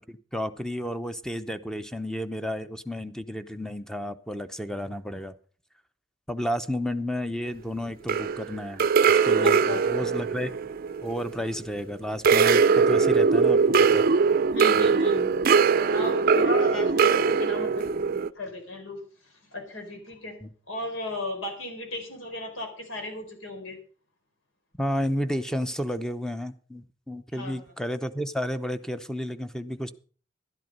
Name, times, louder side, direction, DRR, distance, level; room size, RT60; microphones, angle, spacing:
voice 1, 0.1-5.3 6.3-10.5 11.0-14.1 20.4-20.5 24.8-29.9, equal, 5° left, 11 dB, 0.7 m, -32 dB
sound 1, 8.1-11.7 12.2-18.3, right 5 dB, 50° right, 0.5 m, -21 dB
voice 2, 9.4-10.1 14.5-15.4 15.9-19.0 19.5-20.4 20.7-23.8 27.3-27.6, left 1 dB, 90° left, 4 dB, 4.3 m, -35 dB
12.0 x 11.0 x 5.3 m, 0.41 s
head